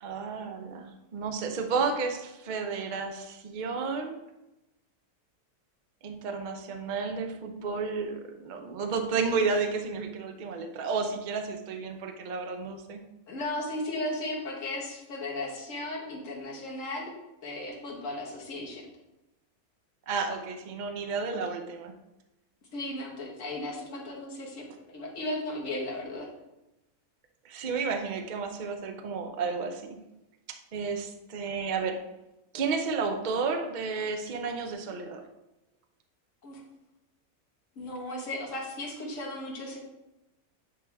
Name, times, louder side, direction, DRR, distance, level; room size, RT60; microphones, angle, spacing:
voice 1, 0.0-4.2 6.0-13.0 20.1-21.9 27.4-30.0 30.5-32.0 32.5-35.2, right 4 dB, 60° right, 5 dB, 0.5 m, -32 dB
voice 2, 13.3-17.1 17.4-18.8 22.7-26.3 36.4-36.6 37.8-39.8, left 1 dB, 55° left, -2 dB, 1.7 m, -35 dB
8.6 x 3.4 x 3.4 m, 0.96 s
omnidirectional pair, 1.6 m